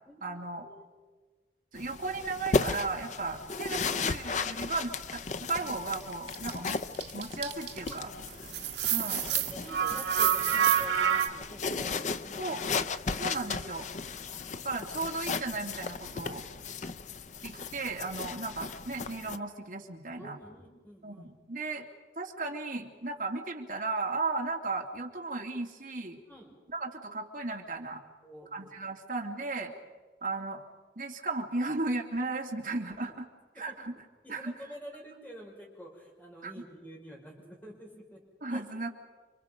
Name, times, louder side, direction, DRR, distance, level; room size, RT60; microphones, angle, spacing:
voice 1, 0.2-0.6 1.7-6.8 7.1-8.1 8.9-9.2 12.4-12.6 13.1-13.9 14.6-16.4 17.4-20.4 21.0-21.9 22.2-26.2 26.7-28.0 28.5-29.7 30.2-30.6 31.0-33.3 33.6-33.9 34.3-34.5 36.4-36.5 38.4-38.9, right 3 dB, 50° right, 1 dB, 2.8 m, -35 dB
sound 1, 1.8-19.4, left 4 dB, 45° left, 0.7 m, -36 dB
sound 2, 6.3-8.0 8.3-11.3, right 9 dB, 75° right, 1.6 m, -27 dB
voice 2, 7.9-8.3 9.0-12.6 16.1-16.5 20.2-21.3 26.3-26.5 28.2-28.7 33.5-33.8 34.2-38.2 38.5-38.6, equal, 10° left, -2 dB, 6.0 m, -48 dB
30.0 x 25.0 x 5.3 m, 1.4 s
head